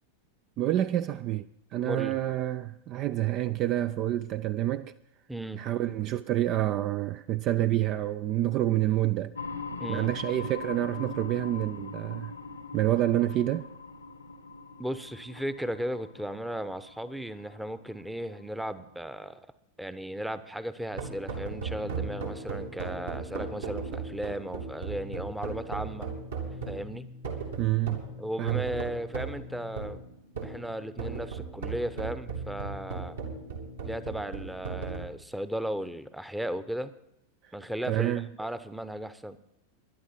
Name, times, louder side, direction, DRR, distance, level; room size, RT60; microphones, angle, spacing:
voice 1, 0.6-4.9 5.5-9.3 9.9-12.3 12.7-13.7 27.6-28.0 28.4-28.6 37.9-38.3, right 13 dB, 35° right, 0.4 m, -28 dB
voice 2, 1.8-2.2 5.3-5.6 9.8-10.1 14.8-19.4 19.8-26.1 26.7-27.1 28.2-30.0 30.4-33.2 33.8-36.9 37.5-39.4, right 1 dB, 5° right, 0.8 m, -36 dB
sound 1, 9.4-18.9, left 4 dB, 75° left, 1.0 m, -42 dB
sound 2, 20.9-35.0, right 4 dB, 65° right, 2.9 m, -37 dB
20.0 x 11.5 x 4.3 m
figure-of-eight pair, 90°, 0 cm